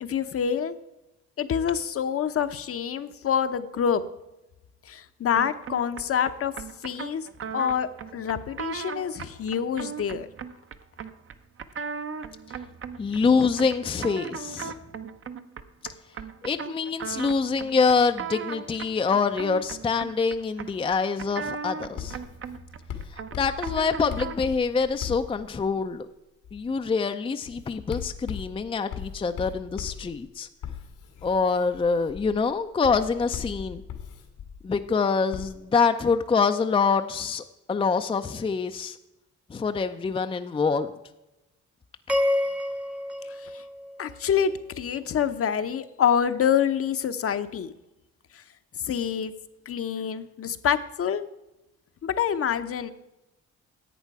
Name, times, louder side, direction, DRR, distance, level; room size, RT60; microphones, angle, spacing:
voice 1, 0.0-0.8 1.4-4.0 4.9-6.5 6.8-7.3 7.5-10.3 43.4-43.6 44.0-47.7 48.3-48.4 48.8-49.3 49.7-51.3 52.0-52.9, left 8 dB, 50° left, 10 dB, 0.8 m, -26 dB
sound 1, 5.3-24.5, right 6 dB, 45° right, 0.7 m, -38 dB
voice 2, 13.0-14.7 16.4-22.2 23.3-26.1 26.5-30.5 31.2-33.8 34.6-39.0 39.5-40.9, left 5 dB, 20° left, 8 dB, 0.4 m, -25 dB
Writing, 22.0-25.9 26.4-26.8 27.5-34.8 35.3-35.5, left 8 dB, 85° left, 1.6 m, -39 dB
sound 2, 42.1-44.5, left 1 dB, 5° right, 0.8 m, -28 dB
11.0 x 8.1 x 4.7 m, 0.96 s
cardioid pair, 90°, 30 cm